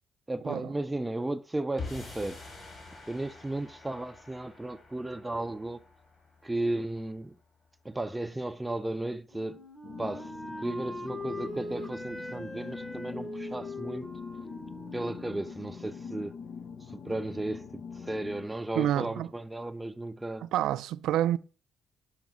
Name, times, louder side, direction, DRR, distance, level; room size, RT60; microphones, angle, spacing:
voice 1, 0.3-2.4 3.1-5.8 6.4-7.4 7.8-9.6 10.0-14.1 14.9-16.4 16.8-20.5, right 2 dB, 15° right, 0.4 m, -35 dB
sound 1, 1.8-8.1, left 3 dB, 40° left, 3.6 m, -47 dB
Wind instrument woodwind instrument, 9.3-16.1, left 1 dB, 15° left, 1.1 m, -42 dB
sound 2, 9.8-18.5, left 6 dB, 65° left, 0.6 m, -43 dB
voice 2, 18.8-19.3 20.4-21.4, right 12 dB, 85° right, 0.4 m, -28 dB
5.8 x 5.2 x 6.0 m
cardioid pair, 90°, 0 cm